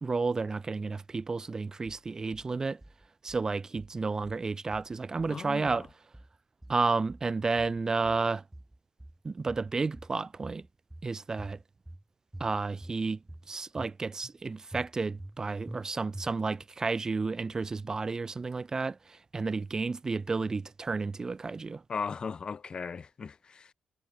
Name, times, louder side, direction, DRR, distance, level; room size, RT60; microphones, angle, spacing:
voice 1, 0.0-2.8 3.2-5.9 6.7-8.4 9.2-10.6 11.0-11.6 12.4-13.2 13.5-21.8, right 4 dB, 25° right, 0.9 m, -31 dB
sound 1, 1.9-2.5 2.8-3.5 3.8-4.5 4.7-5.4 5.7-6.4 6.6-7.3 7.6-8.3 8.5-9.2 9.5-10.2 10.4-11.1 11.4-12.0 12.3-13.0 13.3-13.9 14.2-14.4 14.7-15.4 15.7-15.8 16.1-16.6, right 1 dB, 5° right, 6.1 m, -47 dB
voice 2, 5.3-5.8 21.9-23.7, left 5 dB, 35° left, 4.5 m, -37 dB
cardioid pair, 135°, 3 cm